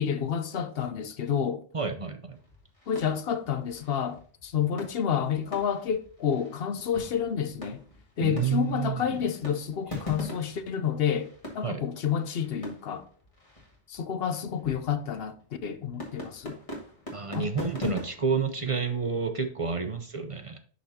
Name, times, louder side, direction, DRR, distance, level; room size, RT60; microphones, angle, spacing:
voice 1, 0.0-1.6 2.9-7.8 8.2-11.3 11.5-13.1 13.9-15.4 15.6-16.6 17.3-17.5, left 8 dB, 65° left, 0.9 m, -29 dB
voice 2, 1.7-2.2 8.2-9.2 11.6-11.8 17.1-20.6, right 5 dB, 40° right, 0.6 m, -29 dB
sound 1, 2.3-20.0, left 2 dB, 30° left, 2.1 m, -43 dB
11.5 x 4.1 x 2.8 m
omnidirectional pair, 1.1 m